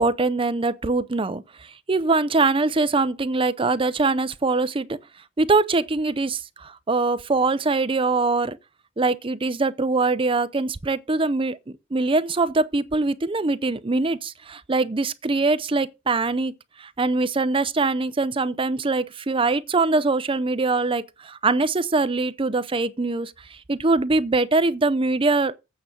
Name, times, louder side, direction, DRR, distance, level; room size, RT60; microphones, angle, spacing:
voice 1, 0.0-1.4 1.9-5.0 5.4-8.6 9.0-16.5 16.8-25.6, right 3 dB, 30° right, 0.6 m, -23 dB
8.6 x 5.0 x 7.0 m
head